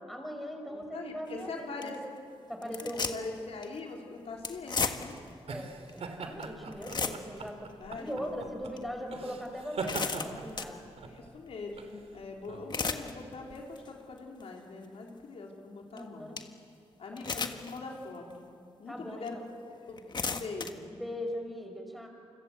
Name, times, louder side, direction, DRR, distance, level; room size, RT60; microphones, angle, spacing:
voice 1, 0.0-1.9 2.5-3.2 5.5-7.7 7.9-10.9 15.9-16.4 17.1-17.2 18.9-19.4 20.9-22.1, equal, ahead, 3 dB, 5.1 m, -40 dB
voice 2, 0.7-2.0 2.6-5.2 7.8-8.5 11.0-16.3 17.0-18.5 18.8-19.5 19.8-20.9, left 3 dB, 65° left, 0 dB, 3.9 m, -42 dB
sound 1, 1.3-1.4 1.8-2.0 2.6-3.4 3.6-3.8 4.4-5.3 5.9-6.0 6.4-6.5 6.7-7.5 8.0-8.1 8.8-8.9 9.5-10.8 12.4-13.1 13.6-13.9 14.4-14.5 16.0-16.1 16.4-16.5 17.2-17.8 18.3-18.4 19.2-19.3 19.9-20.7, left 4 dB, 45° left, 1.7 m, -34 dB
sound 2, 4.4-13.6, right 4 dB, 70° right, 2.9 m, -42 dB
28.5 x 25.5 x 8.2 m, 2.5 s
cardioid pair, 100°, 11 cm